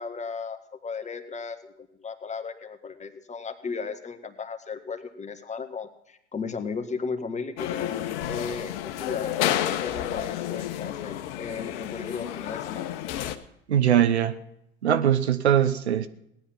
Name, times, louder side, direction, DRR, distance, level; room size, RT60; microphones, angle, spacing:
voice 1, 0.0-12.9, left 5 dB, 20° left, 1.7 m, -35 dB
sound 1, 7.6-13.4, left 12 dB, 60° left, 1.2 m, -30 dB
voice 2, 13.7-14.4 14.8-16.1, right 10 dB, 80° right, 1.0 m, -21 dB
18.0 x 10.5 x 6.0 m
figure-of-eight pair, 75°, 33 cm